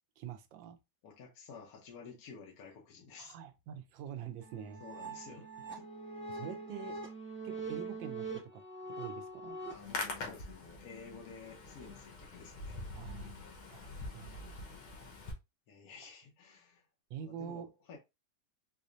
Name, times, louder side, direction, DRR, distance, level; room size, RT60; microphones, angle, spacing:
voice 1, 0.2-0.8 3.2-4.8 6.3-7.0 7.4-9.6 12.9-13.3 13.7-14.6 17.1-17.7, right 8 dB, 80° right, 1.3 m, -46 dB
voice 2, 1.0-3.4 4.8-5.9 9.7-12.8 15.7-16.9 17.2-18.0, left 5 dB, 60° left, 1.1 m, -52 dB
sound 1, 4.4-9.7, right 3 dB, 15° right, 0.4 m, -43 dB
Hands, 9.6-15.3, left 3 dB, 80° left, 1.8 m, -44 dB
4.9 x 2.1 x 2.5 m
omnidirectional pair, 2.1 m